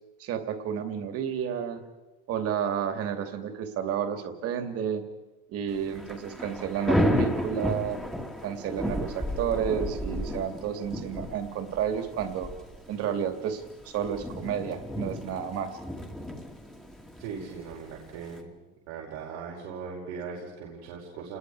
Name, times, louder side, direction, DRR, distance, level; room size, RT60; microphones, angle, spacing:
voice 1, 0.2-1.8 2.3-5.0 5.5-8.0 8.4-12.5 12.9-15.8, right 8 dB, 45° right, 6 dB, 2.7 m, -31 dB
Thunder / Rain, 5.7-18.4, equal, ahead, 2.2 m, -33 dB
voice 2, 17.2-18.5 18.9-21.4, right 5 dB, 90° right, -4 dB, 5.3 m, -39 dB
29.0 x 21.5 x 4.9 m, 1.1 s
cardioid pair, 150°, 32 cm